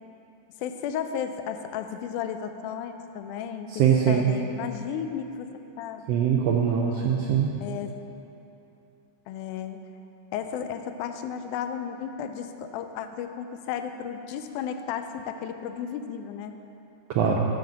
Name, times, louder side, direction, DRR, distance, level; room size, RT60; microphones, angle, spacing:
voice 1, 0.6-5.5 5.8-6.0 7.6-7.9 9.3-9.8 10.3-16.5 17.2-17.4, left 8 dB, 90° left, 8 dB, 2.0 m, -34 dB
voice 2, 3.8-4.3 6.1-7.5 17.1-17.5, right 8 dB, 80° right, -1 dB, 1.4 m, -22 dB
8.0 x 5.2 x 7.3 m, 2.9 s
omnidirectional pair, 3.4 m